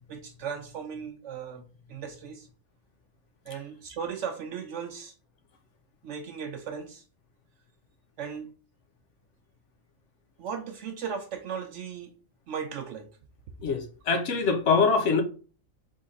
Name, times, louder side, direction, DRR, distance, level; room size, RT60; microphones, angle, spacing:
voice 1, 0.1-1.6 1.9-2.5 3.5-5.1 6.0-7.0 8.2-8.5 10.4-12.1 12.5-13.1, right 7 dB, 70° right, 0.9 m, -36 dB
voice 2, 13.6-15.2, left 4 dB, 70° left, 1.0 m, -24 dB
3.6 x 3.4 x 3.9 m
omnidirectional pair, 1.3 m